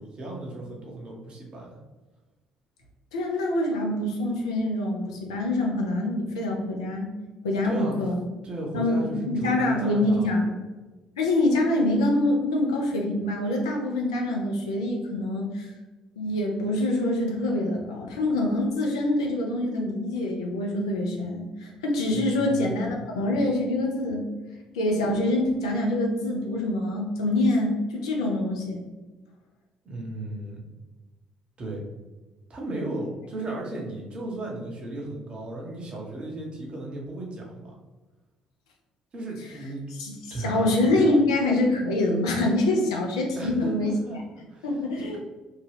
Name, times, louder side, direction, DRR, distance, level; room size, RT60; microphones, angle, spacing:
voice 1, 0.0-1.8 7.6-8.0 8.4-10.3 22.1-22.8 29.8-30.6 31.6-31.8 32.5-37.8 39.1-39.8 40.3-40.7 43.3-44.7 45.1-45.2, right 1 dB, 40° right, -2 dB, 0.9 m, -35 dB
voice 2, 3.1-7.1 7.4-8.2 8.7-10.5 11.2-15.7 16.2-24.2 24.7-28.8 40.0-43.9 44.6-45.2, left 1 dB, 80° left, 0 dB, 0.5 m, -25 dB
2.8 x 2.2 x 3.3 m, 1.2 s
figure-of-eight pair, 50°, 3 cm